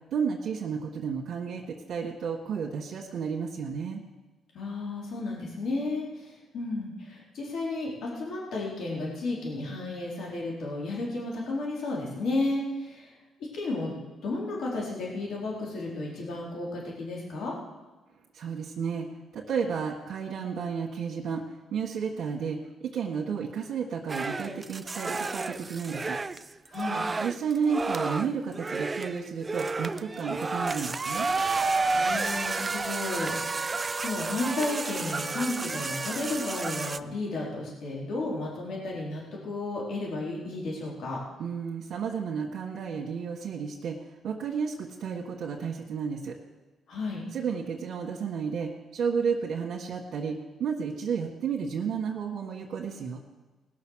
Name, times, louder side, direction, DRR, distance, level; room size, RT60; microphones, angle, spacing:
voice 1, 0.1-4.0 18.3-26.2 27.2-31.3 41.4-46.3 47.3-53.2, right 6 dB, 65° right, -3 dB, 1.5 m, -32 dB
voice 2, 4.5-13.1 13.5-14.0 14.2-17.6 26.7-27.1 31.9-41.2 46.9-47.2, left 2 dB, 70° left, -4 dB, 3.9 m, -33 dB
sound 1, 24.1-37.0, right 3 dB, 25° right, 0.4 m, -31 dB
19.0 x 6.4 x 6.4 m, 1.2 s
cardioid pair, 90°, 0 cm